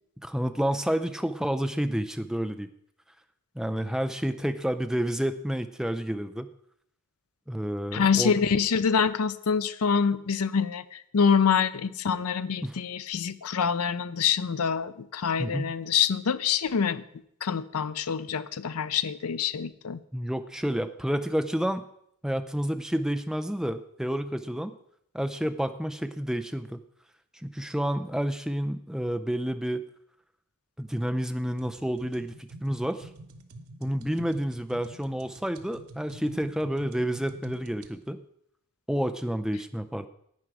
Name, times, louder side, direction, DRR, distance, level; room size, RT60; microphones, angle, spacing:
voice 1, 0.2-2.7 3.6-6.5 7.5-8.4 12.6-12.8 15.4-15.7 20.1-21.8 22.2-24.7 25.1-26.8 27.3-29.8 30.8-33.1 33.8-38.2 38.9-40.1, equal, ahead, 9 dB, 0.4 m, -29 dB
voice 2, 7.9-17.0 17.4-20.0, left 6 dB, 85° left, 14 dB, 0.5 m, -26 dB
sound 1, 31.6-37.9, right 2 dB, 90° right, 0.9 m, -47 dB
11.0 x 8.9 x 4.8 m, 0.71 s
head